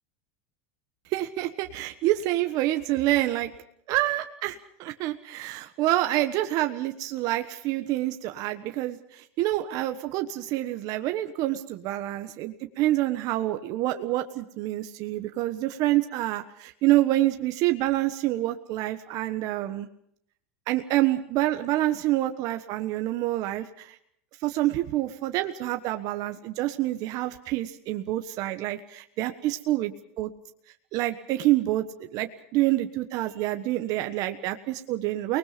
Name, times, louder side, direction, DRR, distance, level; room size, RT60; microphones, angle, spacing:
voice 1, 1.1-3.5 3.9-19.9 20.7-24.0 24.4-29.9 30.2-30.3 30.9-35.4, right 15 dB, 55° right, 7 dB, 1.3 m, -27 dB
29.0 x 20.0 x 5.2 m, 0.68 s
supercardioid pair, 110°, 8 cm